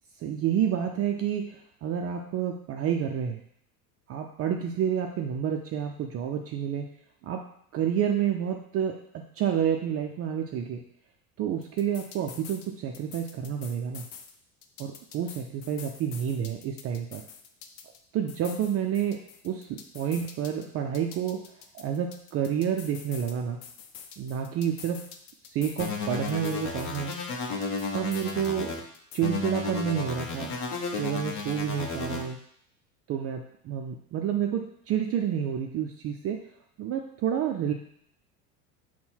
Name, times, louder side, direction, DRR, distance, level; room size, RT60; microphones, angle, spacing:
voice 1, 0.2-3.4 4.1-6.9 7.2-7.4 7.7-9.0 9.4-10.8 11.4-14.0 14.8-17.2 18.1-19.2 19.4-21.4 21.7-23.6 24.2-25.0 25.5-27.2 27.9-28.7 29.1-30.5 31.0-32.4 33.1-36.4 36.8-37.7, right 9 dB, 35° right, 2 dB, 0.4 m, -29 dB
sound 1, 11.6-12.7 12.9-14.3 14.6-18.0 18.3-20.7 20.9-23.3 23.6-26.0 26.3-28.7 28.9-29.2, left 7 dB, 65° left, 0.7 m, -46 dB
sound 2, 25.8-28.8 29.2-32.2, left 4 dB, 40° left, 0.9 m, -33 dB
5.4 x 2.2 x 4.3 m, 0.69 s
hypercardioid pair, 85°, 47 cm